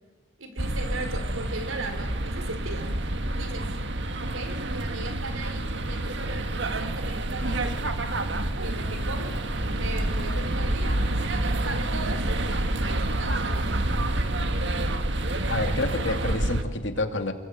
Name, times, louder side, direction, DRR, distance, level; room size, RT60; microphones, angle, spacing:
voice 1, 0.4-3.7 4.2-7.7 8.6-11.0 11.3-12.4 12.9-13.9, right 2 dB, 85° right, 7 dB, 4.8 m, -38 dB
sound 1, 0.6-16.6, right 1 dB, 60° right, 1.7 m, -28 dB
voice 2, 15.5-17.3, left 2 dB, 60° left, 6 dB, 2.6 m, -28 dB
28.5 x 22.0 x 9.3 m, 1.3 s
head